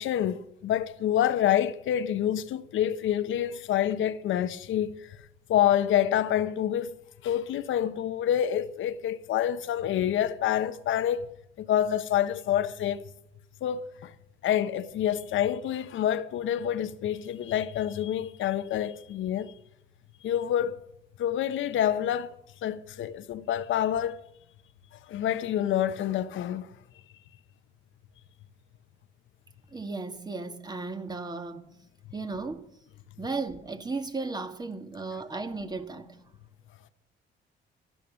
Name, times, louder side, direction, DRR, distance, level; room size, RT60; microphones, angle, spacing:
voice 1, 0.0-5.2 5.5-6.9 7.2-11.3 11.6-13.0 13.6-14.1 14.4-19.5 20.2-20.8 21.2-22.3 22.6-24.2 25.1-26.7, left 10 dB, 80° left, 1.0 m, -27 dB
voice 2, 29.7-31.7 32.1-32.6 33.2-36.2, right 3 dB, 20° right, 1.8 m, -35 dB
12.5 x 12.5 x 6.3 m
cardioid pair, 90°, 20 cm